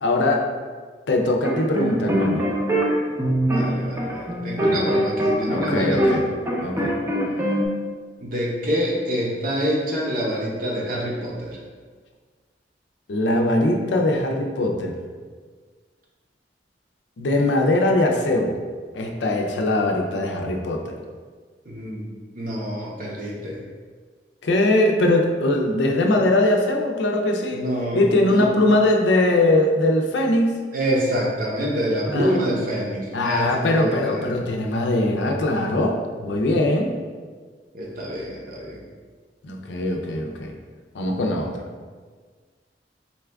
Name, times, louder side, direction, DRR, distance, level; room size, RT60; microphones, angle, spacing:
voice 1, 0.0-0.5 1.1-2.5 4.6-4.8 5.5-6.2 6.6-7.0 13.1-14.9 17.2-18.6 18.9-21.0 24.4-27.7 27.9-30.6 32.1-32.3 33.1-37.0 39.4-40.5 40.9-41.6, left 1 dB, 90° left, 2 dB, 0.5 m, -21 dB
sound 1, 1.4-6.2 6.5-7.7, right 1 dB, 15° right, 0.5 m, -23 dB
voice 2, 3.4-6.2 8.2-11.6 21.7-22.1 22.3-23.6 27.5-28.5 30.7-34.2 37.7-38.8, equal, 50° right, -3 dB, 0.8 m, -26 dB
4.1 x 2.3 x 3.3 m, 1.5 s
head